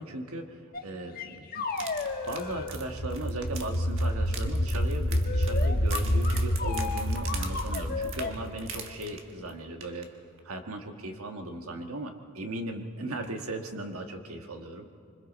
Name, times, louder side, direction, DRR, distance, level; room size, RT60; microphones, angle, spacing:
voice 1, 0.0-1.7 2.3-10.1 10.4-14.9, right 2 dB, 75° right, 5 dB, 1.5 m, -37 dB
sound 1, 0.7-0.8 1.1-2.7 5.2-8.3, left 4 dB, 45° left, 1.3 m, -34 dB
sound 2, 1.7-9.5 9.8-10.1 10.4-10.5, right 6 dB, 60° right, 1.5 m, -42 dB
sound 3, 2.3-9.1, equal, 75° left, 2.9 m, -28 dB
26.0 x 25.0 x 4.2 m, 2.5 s
head